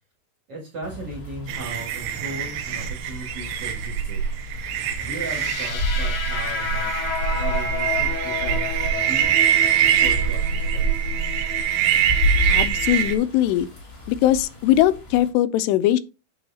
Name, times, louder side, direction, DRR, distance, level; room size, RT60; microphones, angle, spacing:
voice 1, 0.5-4.2 5.0-9.4 9.8-11.1, right 2 dB, 45° right, 2.3 m, -37 dB
sound 1, 0.8-15.3, left 2 dB, 25° left, 1.6 m, -33 dB
sound 2, 1.5-13.2, right 9 dB, 85° right, 2.9 m, -23 dB
sound 3, 5.1-13.1, left 7 dB, 60° left, 2.0 m, -32 dB
voice 2, 12.5-13.7 14.1-16.0, left 13 dB, 85° left, 2.7 m, -20 dB
9.4 x 4.5 x 2.8 m
omnidirectional pair, 4.8 m